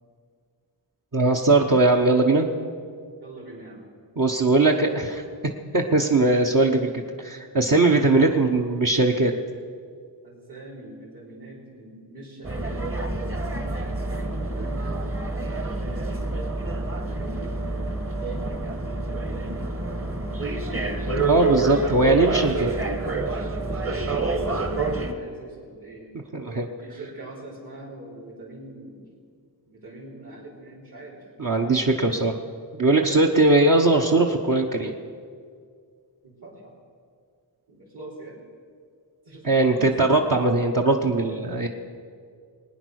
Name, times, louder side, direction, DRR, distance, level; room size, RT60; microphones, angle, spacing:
voice 1, 1.1-2.5 4.2-5.2 5.7-6.9 7.2-9.3 21.2-22.7 26.3-26.7 31.4-32.4 32.7-34.9 39.4-41.7, right 2 dB, 45° right, 0 dB, 1.1 m, -20 dB
voice 2, 3.2-3.9 10.2-12.8 13.7-15.0 15.5-16.2 16.9-18.5 19.0-19.7 20.3-21.4 22.7-22.8 23.2-29.1 29.7-31.2 36.2-36.7 37.7-38.4 39.2-39.9, right 2 dB, 60° right, -6 dB, 4.0 m, -43 dB
sound 1, 12.4-25.1, right 2 dB, 30° right, 1.4 m, -28 dB
20.5 x 9.6 x 6.4 m, 2.1 s
wide cardioid pair, 75°, 46 cm